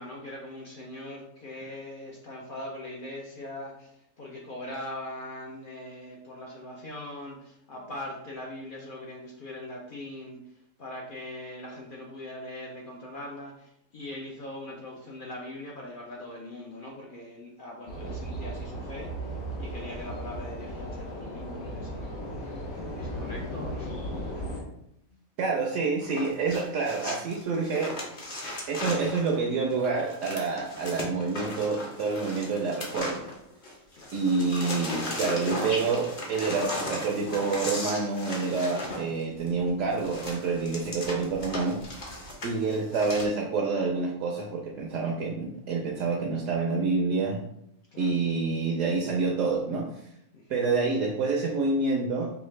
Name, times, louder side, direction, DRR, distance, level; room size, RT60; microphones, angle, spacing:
voice 1, 0.0-22.1 23.0-24.0 33.9-34.1 42.5-42.6 47.9-48.1 50.3-50.6, left 1 dB, 55° left, -2 dB, 0.6 m, -41 dB
sound 1, 17.9-24.6, equal, 80° left, 1.7 m, -36 dB
voice 2, 25.4-27.9 28.7-33.2 34.1-41.8 42.4-47.4 48.0-49.9 50.5-52.3, right 4 dB, 70° right, 0 dB, 0.9 m, -28 dB
sound 2, 26.0-33.7 34.0-43.3, left 1 dB, 40° left, 0.9 m, -36 dB
5.5 x 2.4 x 3.1 m, 0.77 s
omnidirectional pair, 1.5 m